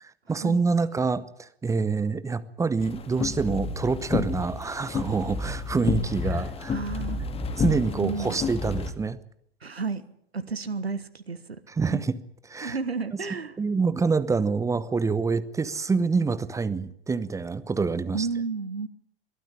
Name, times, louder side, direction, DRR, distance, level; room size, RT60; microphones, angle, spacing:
voice 1, 0.3-6.7 7.6-9.2 11.7-12.1 12.5-12.8 13.6-18.3, right 4 dB, 10° right, 16 dB, 0.9 m, -26 dB
sound 1, 2.8-8.9, left 5 dB, 20° left, 1.9 m, -30 dB
voice 2, 6.7-7.2 8.0-8.4 9.6-10.0 10.3-11.6 11.9-12.0 12.6-13.5 18.1-18.9, right 4 dB, 80° right, 14 dB, 1.6 m, -32 dB
22.0 x 13.5 x 9.9 m, 0.71 s
figure-of-eight pair, 95°, 31 cm